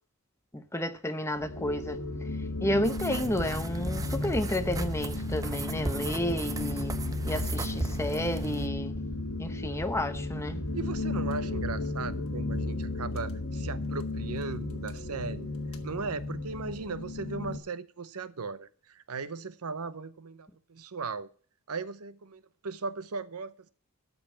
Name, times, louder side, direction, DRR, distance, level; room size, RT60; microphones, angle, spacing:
voice 1, 0.5-2.0 2.6-6.9 7.2-8.9 9.4-10.6, left 1 dB, 10° left, 0.8 m, -31 dB
sound 1, 1.4-17.6, left 2 dB, 65° left, 1.5 m, -34 dB
sound 2, 2.8-8.7, right 2 dB, 15° right, 0.6 m, -36 dB
voice 2, 10.7-15.5 15.8-21.3 21.7-23.7, right 4 dB, 80° right, 0.8 m, -37 dB
13.0 x 5.5 x 7.2 m
head